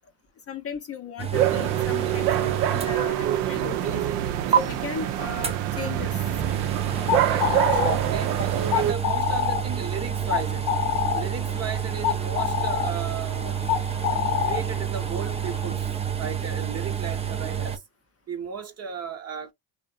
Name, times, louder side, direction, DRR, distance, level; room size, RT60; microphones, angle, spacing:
voice 1, 0.5-4.0 4.5-6.6 11.2-11.3, left 6 dB, 30° left, 0.5 m, -37 dB
sound 1, 1.2-3.5 3.8-3.9 4.5-4.6 5.4-17.8, right 9 dB, 15° right, 0.3 m, -29 dB
sound 2, 1.3-8.9, right 11 dB, 85° right, 0.6 m, -26 dB
sound 3, 6.9-15.7, left 10 dB, 85° left, 0.7 m, -28 dB
voice 2, 7.2-8.3 8.7-10.7 11.1-13.6 14.4-15.9 16.2-17.8 18.3-19.5, right 7 dB, 35° right, 0.8 m, -35 dB
2.6 x 2.1 x 2.4 m
supercardioid pair, 90°, 46 cm